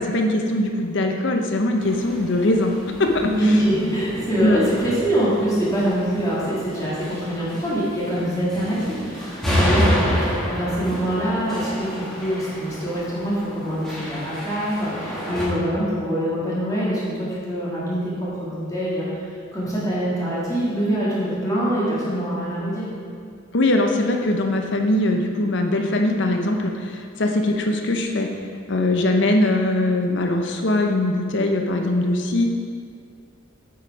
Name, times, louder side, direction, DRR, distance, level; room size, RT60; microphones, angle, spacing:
voice 1, 0.0-2.7 3.0-3.6 4.4-4.6 23.5-28.3 28.7-32.4, left 1 dB, 60° left, 3 dB, 0.8 m, -21 dB
sound 1, 1.8-15.5, equal, ahead, 1.4 m, -29 dB
voice 2, 3.2-19.2 19.5-22.9, equal, 15° left, -9 dB, 1.7 m, -24 dB
8.2 x 5.0 x 4.6 m, 2.2 s
head